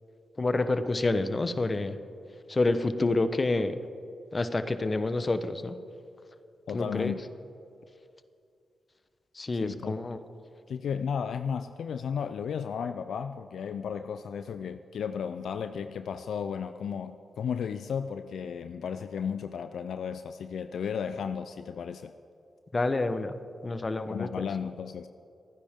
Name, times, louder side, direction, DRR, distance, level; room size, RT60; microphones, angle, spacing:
voice 1, 0.4-2.0 2.5-3.8 4.3-5.8 6.7-7.2 9.3-10.2 22.7-23.4 23.6-24.4, left 2 dB, 35° left, 10 dB, 1.0 m, -28 dB
voice 2, 6.7-7.2 9.6-9.9 10.7-22.1 24.1-25.1, left 7 dB, 80° left, 10 dB, 0.4 m, -34 dB
29.5 x 9.9 x 3.7 m, 2.5 s
supercardioid pair, 50°, 0 cm